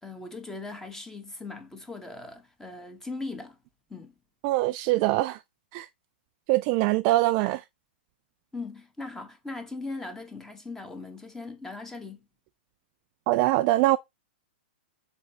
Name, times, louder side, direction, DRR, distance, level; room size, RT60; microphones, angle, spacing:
voice 1, 0.0-3.6 3.9-4.1 8.5-12.3, left 3 dB, 5° left, 1.5 m, -39 dB
voice 2, 4.4-5.4 5.7-5.9 6.5-7.6 13.3-14.0, right 17 dB, 35° right, 0.3 m, -23 dB
7.2 x 4.3 x 4.0 m
figure-of-eight pair, 105°, 6 cm